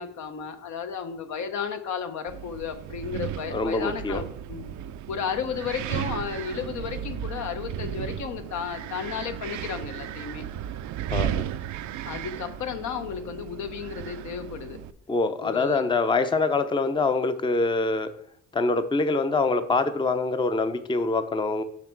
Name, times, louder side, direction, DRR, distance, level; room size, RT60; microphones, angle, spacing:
voice 1, 0.0-4.7 5.1-10.4 12.1-14.8 15.4-15.9, left 7 dB, 70° left, 7 dB, 0.9 m, -33 dB
Wind, 2.3-14.9, right 10 dB, 70° right, 0.5 m, -35 dB
voice 2, 3.5-4.2 11.1-11.5 15.1-18.1 18.5-21.6, left 3 dB, 15° left, 10 dB, 0.5 m, -25 dB
6.3 x 5.9 x 4.5 m, 0.68 s
cardioid pair, 90°, 30 cm